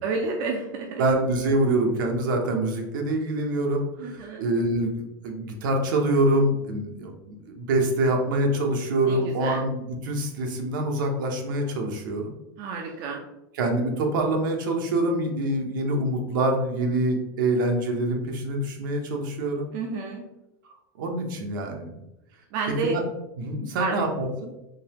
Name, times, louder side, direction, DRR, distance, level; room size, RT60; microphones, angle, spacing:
voice 1, 0.0-1.0 4.0-4.4 9.1-9.6 12.6-13.2 19.7-20.2 22.5-23.0 23.8-24.1, right 4 dB, 55° right, 1 dB, 0.6 m, -30 dB
voice 2, 1.0-12.3 13.5-19.7 21.0-21.9 22.8-23.0 23.4-24.3, right 1 dB, 75° right, 2 dB, 0.9 m, -25 dB
3.8 x 2.9 x 2.9 m, 0.91 s
supercardioid pair, 140°, 11 cm